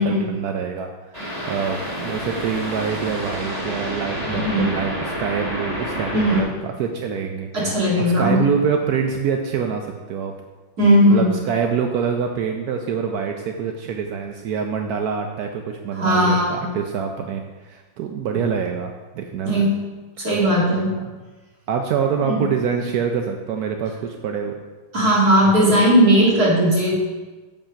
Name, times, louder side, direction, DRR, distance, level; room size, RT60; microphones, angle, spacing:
voice 1, 0.0-6.5 6.8-7.5 8.0-10.3 11.1-19.6 20.2-20.3 21.7-24.6, right 6 dB, 75° right, 4 dB, 0.8 m, -25 dB
sound 1, 1.1-6.4, equal, 10° right, 2.6 m, -29 dB
voice 2, 4.2-4.6 6.1-6.6 7.5-8.5 10.8-11.4 15.9-16.7 19.4-19.7 20.2-21.0 22.2-22.4 24.9-27.0, equal, 50° right, -6 dB, 2.7 m, -17 dB
7.4 x 5.3 x 5.7 m, 1.2 s
omnidirectional pair, 2.3 m